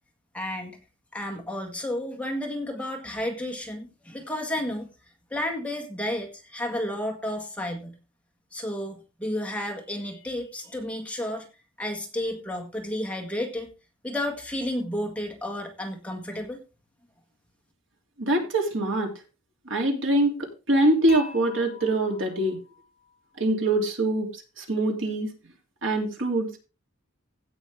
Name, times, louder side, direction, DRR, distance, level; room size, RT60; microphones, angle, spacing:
voice 1, 0.3-0.8 1.1-4.9 5.3-8.0 8.5-11.5 11.8-13.7 14.0-16.6, left 1 dB, 5° left, 2 dB, 1.8 m, -32 dB
voice 2, 18.2-19.1 19.7-22.6 23.4-25.3 25.8-26.6, right 1 dB, 65° right, 2 dB, 3.0 m, -24 dB
Dishes pots and pans / Chink clink, 21.1-23.2, left 5 dB, 30° left, 5.7 m, -45 dB
16.5 x 6.3 x 3.6 m, 0.29 s
head